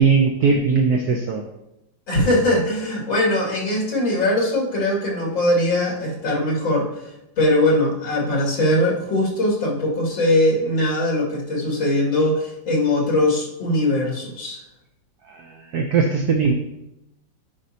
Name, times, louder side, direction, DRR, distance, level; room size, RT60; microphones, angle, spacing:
voice 1, 0.0-1.4 15.3-16.5, right 5 dB, 65° right, 3 dB, 1.0 m, -19 dB
voice 2, 2.1-7.0 7.4-14.6, left 1 dB, 80° left, -4 dB, 3.0 m, -21 dB
10.5 x 5.3 x 2.8 m, 0.88 s
omnidirectional pair, 2.1 m